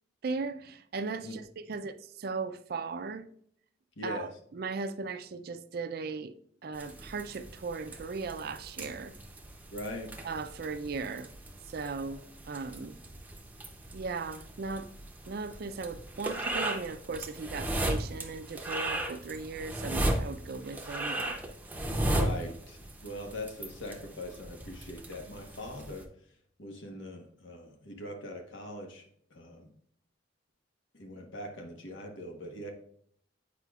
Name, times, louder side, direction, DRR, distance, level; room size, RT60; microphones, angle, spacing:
voice 1, 0.2-3.3 4.0-6.3 6.6-9.1 10.2-11.3 11.7-12.2 12.5-13.0 13.9-14.9 15.3-21.4, right 4 dB, 55° right, 0.4 m, -37 dB
voice 2, 4.0-4.4 9.7-10.2 22.0-26.1 26.6-29.7 30.9-32.7, left 1 dB, 90° left, 1.1 m, -41 dB
sound 1, 6.7-26.0, right 1 dB, 10° right, 0.6 m, -36 dB
8.2 x 4.9 x 2.3 m
head